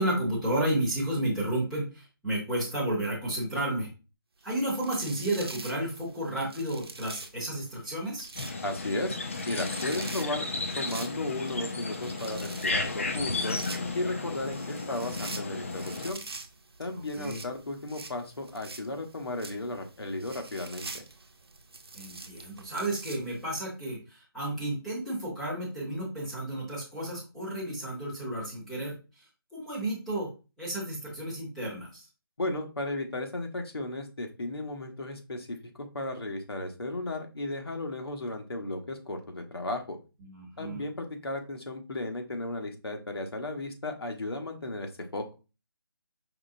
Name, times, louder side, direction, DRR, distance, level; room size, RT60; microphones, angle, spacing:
voice 1, 0.0-3.9 4.4-8.3 16.9-17.4 21.9-28.9 29.5-30.3 30.6-32.0 40.2-40.8, right 1 dB, ahead, -8 dB, 0.8 m, -32 dB
sound 1, 4.5-23.6, right 3 dB, 80° right, 0.8 m, -46 dB
sound 2, 8.3-16.1, left 3 dB, 35° left, 0.4 m, -34 dB
voice 2, 8.6-9.2 9.5-10.5 10.7-13.6 13.9-16.2 16.8-21.0 32.4-40.0 40.6-45.2, left 2 dB, 80° left, 3 dB, 1.1 m, -35 dB
5.0 x 3.1 x 2.6 m, 0.31 s
figure-of-eight pair, 170°, 13 cm